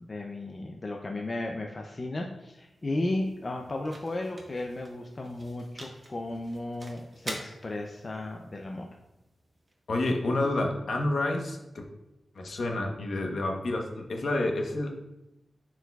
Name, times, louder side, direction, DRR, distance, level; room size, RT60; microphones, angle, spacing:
voice 1, 0.1-8.9, left 2 dB, 30° left, 1 dB, 0.4 m, -34 dB
sound 1, 2.3-10.4, right 1 dB, 25° right, 1.0 m, -47 dB
voice 2, 9.9-11.8 12.3-14.9, left 2 dB, 55° left, 2 dB, 0.9 m, -29 dB
10.0 x 4.6 x 2.3 m, 0.93 s
wide cardioid pair, 180°, 0 cm